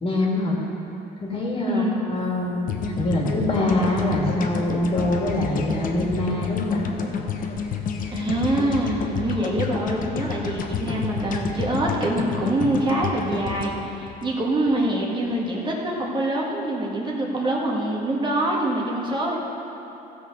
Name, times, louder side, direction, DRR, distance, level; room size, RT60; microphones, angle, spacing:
voice 1, 0.0-0.6 1.2-6.8, left 1 dB, 30° left, -2 dB, 2.2 m, -24 dB
voice 2, 1.7-2.0 8.1-19.4, right 1 dB, 25° right, -3 dB, 1.7 m, -25 dB
sound 1, 2.7-14.9, left 6 dB, 55° left, 1.0 m, -29 dB
15.5 x 6.6 x 5.4 m, 3.0 s
cardioid pair, 110°, 17 cm